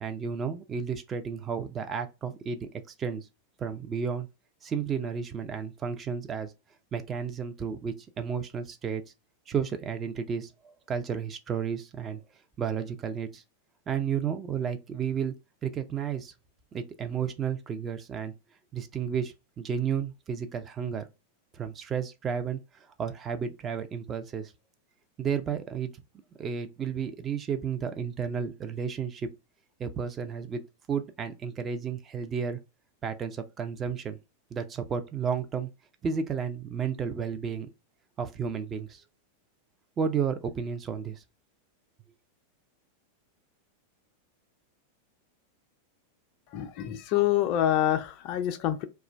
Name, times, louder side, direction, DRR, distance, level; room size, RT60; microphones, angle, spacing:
voice 1, 0.0-2.7 3.0-3.3 3.6-4.3 4.6-6.5 6.9-9.0 9.5-10.5 10.9-12.2 12.6-13.4 13.9-15.3 15.6-16.3 16.7-18.3 18.7-21.1 21.5-22.6 23.0-24.5 25.2-25.9 26.4-29.3 29.8-30.6 30.9-32.6 33.0-34.2 34.5-35.7 36.0-37.7 38.2-39.0 40.0-41.2, right 7 dB, 25° right, 0.4 m, -32 dB
voice 2, 46.5-48.8, left 12 dB, 40° left, 0.3 m, -26 dB
2.3 x 2.1 x 3.2 m
figure-of-eight pair, 90°, 0 cm